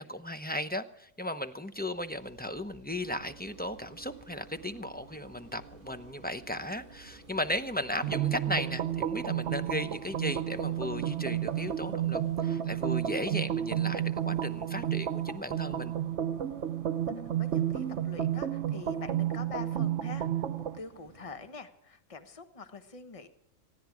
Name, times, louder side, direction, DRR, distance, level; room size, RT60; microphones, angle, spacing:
voice 1, 0.0-15.9, left 1 dB, 10° left, 9 dB, 0.7 m, -36 dB
sound 1, 1.6-16.4, right 3 dB, 80° left, 6.7 m, -58 dB
sound 2, 3.0-21.5, right 5 dB, 40° right, 2.0 m, -56 dB
sound 3, 8.0-20.8, right 10 dB, 60° right, 1.2 m, -31 dB
voice 2, 17.4-23.3, left 4 dB, 25° left, 9 dB, 1.3 m, -45 dB
19.0 x 15.5 x 4.9 m, 0.71 s
omnidirectional pair, 1.4 m